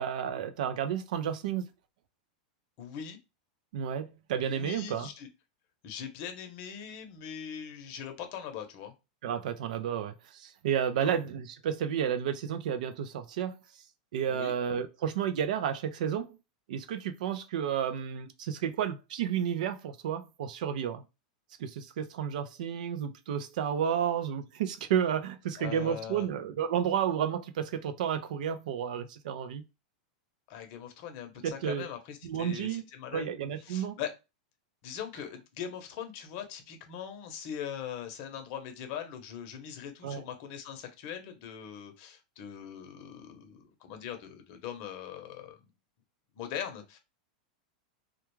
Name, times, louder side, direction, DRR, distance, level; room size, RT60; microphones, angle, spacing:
voice 1, 0.0-1.7 3.7-5.1 9.2-13.6 14.1-16.4 16.7-21.0 21.6-29.7 31.4-31.9 32.2-32.8 33.1-34.0 40.0-40.2, right 8 dB, 70° right, 0.5 m, -31 dB
voice 2, 2.8-3.2 4.4-5.3 5.8-8.9 10.9-11.2 14.3-14.5 25.6-26.3 30.5-33.3 33.6-34.1 34.8-45.6 46.3-47.0, left 8 dB, 45° left, 0.7 m, -41 dB
2.3 x 2.2 x 3.1 m
supercardioid pair, 145°, 4 cm